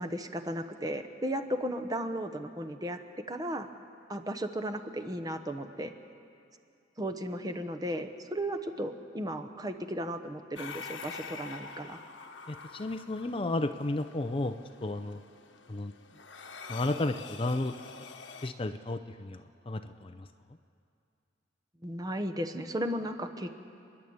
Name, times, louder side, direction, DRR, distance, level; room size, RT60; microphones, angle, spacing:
voice 1, 0.0-3.0 3.3-3.7 4.1-5.9 7.0-12.0 21.8-23.6, equal, 20° right, 6 dB, 0.9 m, -35 dB
sound 1, 10.6-18.5, left 5 dB, 75° left, 1.3 m, -46 dB
voice 2, 12.5-15.2 15.7-15.9 16.7-17.7 18.4-20.3, left 2 dB, 30° left, 9 dB, 0.6 m, -33 dB
30.0 x 11.0 x 8.7 m, 2.5 s
head